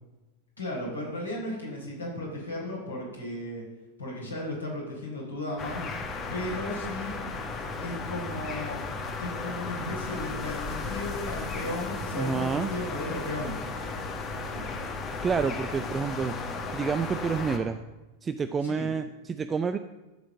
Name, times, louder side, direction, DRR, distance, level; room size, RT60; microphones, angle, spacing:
voice 1, 0.6-3.6 4.0-5.8 6.3-7.2 7.6-8.8 9.2-13.6 14.5-14.6 18.6-18.9, left 1 dB, 75° left, -3 dB, 4.1 m, -35 dB
sound 1, 5.6-17.6, left 3 dB, 25° left, 1.5 m, -35 dB
voice 2, 12.2-12.7 15.2-16.4 16.7-17.8 18.2-19.8, right 5 dB, 20° right, 10 dB, 0.4 m, -28 dB
12.5 x 5.1 x 7.2 m, 1.1 s
figure-of-eight pair, 90°, 0 cm